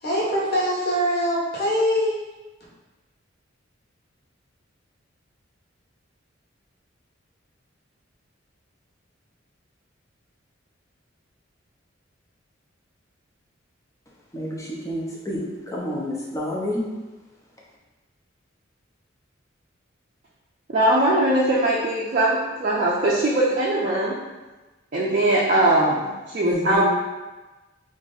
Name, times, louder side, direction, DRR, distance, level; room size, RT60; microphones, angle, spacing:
voice 1, 0.0-2.2, equal, 50° left, -6 dB, 1.1 m, -23 dB
voice 2, 14.3-16.9 26.4-26.8, equal, 15° left, -4 dB, 0.6 m, -29 dB
voice 3, 20.7-24.1 24.9-26.8, right 1 dB, 45° right, -6 dB, 0.5 m, -21 dB
2.9 x 2.6 x 3.9 m, 1.2 s
head